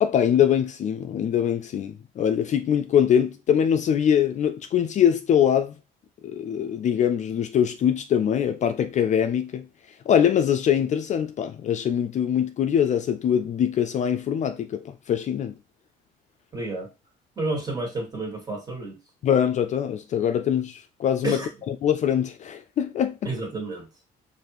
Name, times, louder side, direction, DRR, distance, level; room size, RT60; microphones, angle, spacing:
voice 1, 0.0-5.7 6.2-9.7 10.1-15.5 19.2-21.4 21.7-23.3, left 9 dB, 45° left, 0.4 m, -23 dB
voice 2, 16.5-16.9 17.4-19.0 21.2-21.5 23.3-23.9, right 2 dB, 25° right, 1.7 m, -30 dB
4.9 x 2.6 x 3.0 m
cardioid pair, 110°, 17 cm